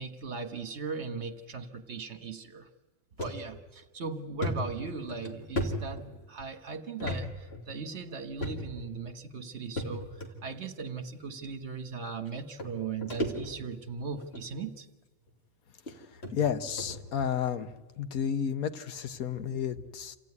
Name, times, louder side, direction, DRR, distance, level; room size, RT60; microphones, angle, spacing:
voice 1, 0.0-2.7 3.2-6.0 6.3-14.9, right 4 dB, 55° right, 8 dB, 1.5 m, -38 dB
sound 1, 3.2-3.4 3.8-3.9 4.4-6.5 7.0-7.2 7.5-7.6 8.4-8.9 9.8-10.3 11.2-11.3 12.3-12.4 12.6-13.8 14.2-14.5 15.3-15.4 15.9-16.0 16.2-16.3 16.8-17.0, equal, 45° left, 2.7 m, -35 dB
voice 2, 16.3-17.7 18.0-20.2, left 8 dB, 85° left, 10 dB, 1.4 m, -31 dB
27.5 x 14.5 x 9.7 m, 1.3 s
omnidirectional pair, 1.5 m